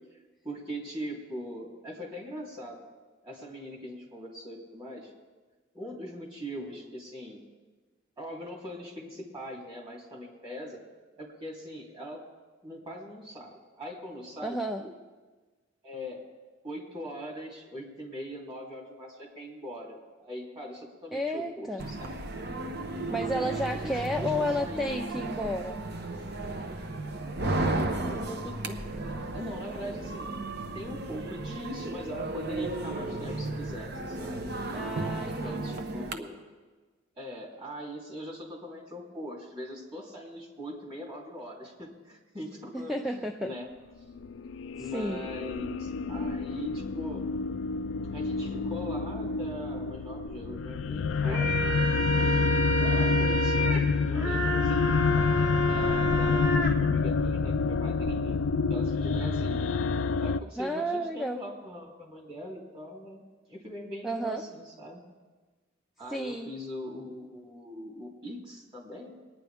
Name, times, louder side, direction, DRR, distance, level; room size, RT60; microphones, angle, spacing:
voice 1, 0.4-2.8 3.2-5.1 5.7-7.4 8.2-10.8 11.2-12.2 12.6-14.9 15.8-16.2 16.6-22.2 23.3-24.3 24.6-25.0 28.0-28.8 29.3-30.3 30.7-34.5 35.2-36.4 37.1-43.7 44.7-47.3 48.1-51.5 52.1-58.4 58.7-59.7 60.2-63.2 63.5-65.0 66.0-69.1, equal, 25° right, -3 dB, 3.1 m, -41 dB
voice 2, 14.4-14.8 21.1-21.8 23.1-25.8 34.7-35.9 42.7-43.5 44.9-45.3 60.6-61.4 64.0-64.4 66.1-66.5, equal, ahead, 4 dB, 0.4 m, -32 dB
sound 1, 21.8-36.1, right 2 dB, 55° right, 0.9 m, -34 dB
sound 2, 44.2-60.4, left 5 dB, 80° left, 0.4 m, -28 dB
sound 3, 51.1-56.7, right 1 dB, 85° right, 1.9 m, -29 dB
23.0 x 9.9 x 3.5 m, 1.3 s
head